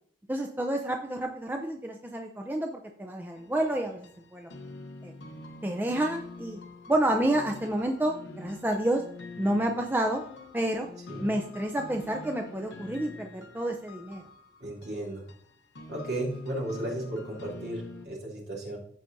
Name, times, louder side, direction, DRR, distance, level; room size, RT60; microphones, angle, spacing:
voice 1, 0.3-4.5 5.0-5.1 5.6-6.6 6.9-9.0 9.4-10.2 10.5-10.9 11.2-14.2, right 1 dB, 10° right, 2 dB, 0.5 m, -29 dB
sound 1, 3.3-18.1, left 2 dB, 75° left, 0.9 m, -46 dB
voice 2, 14.6-15.2 15.9-18.8, right 1 dB, 60° right, -3 dB, 2.8 m, -34 dB
14.0 x 4.9 x 2.7 m, 0.62 s
head